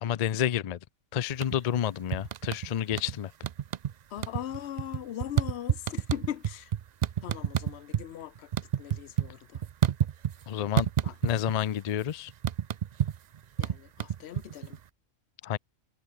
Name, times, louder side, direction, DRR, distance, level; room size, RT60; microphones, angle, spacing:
voice 1, 0.0-0.8 1.1-3.3 10.5-10.9 11.2-12.3 15.4-15.6, left 10 dB, 90° left, 0.3 m, -29 dB
sound 1, 1.3-1.8 2.1-3.2 3.4-3.9 4.2-8.1 8.4-10.4 10.8-11.6 11.9-14.8, right 9 dB, 90° right, 0.3 m, -29 dB
voice 2, 4.1-6.7 7.2-8.5 8.8-9.6 11.0-11.1 13.6-14.8, left 11 dB, 60° left, 0.9 m, -39 dB
omnidirectional pair, 1.4 m